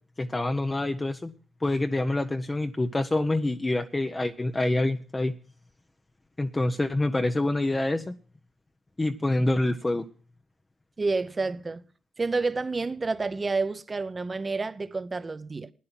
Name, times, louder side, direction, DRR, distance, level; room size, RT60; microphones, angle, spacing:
voice 1, 0.2-1.3 1.6-5.3 6.4-8.1 9.0-10.0, left 2 dB, 20° left, 0.8 m, -26 dB
voice 2, 11.0-11.8 12.2-15.7, right 3 dB, 25° right, 0.9 m, -29 dB
12.5 x 9.7 x 5.9 m
cardioid pair, 90°, 0 cm